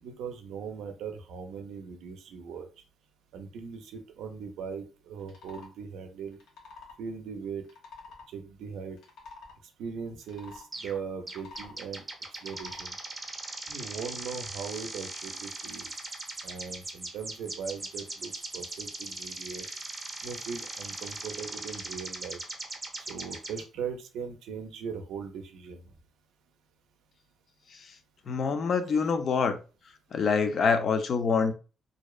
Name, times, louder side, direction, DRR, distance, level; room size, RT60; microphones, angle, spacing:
voice 1, 0.0-2.7 3.3-6.4 7.0-7.6 8.3-9.0 9.8-12.0 12.4-12.9 13.7-15.9 16.4-19.7 20.2-22.4 23.0-25.8, right 6 dB, 85° right, 0.4 m, -39 dB
sound 1, 5.2-5.7 6.3-7.0 7.6-8.3 8.9-9.6 10.2-10.7 11.2-11.8 12.3-12.9, left 4 dB, 80° left, 0.9 m, -48 dB
sound 2, 10.7-11.0 11.3-23.6, right 2 dB, 25° right, 0.6 m, -39 dB
voice 2, 28.3-29.6 30.1-31.5, left 5 dB, 55° left, 0.4 m, -25 dB
2.6 x 2.0 x 2.3 m
cardioid pair, 90°, 0 cm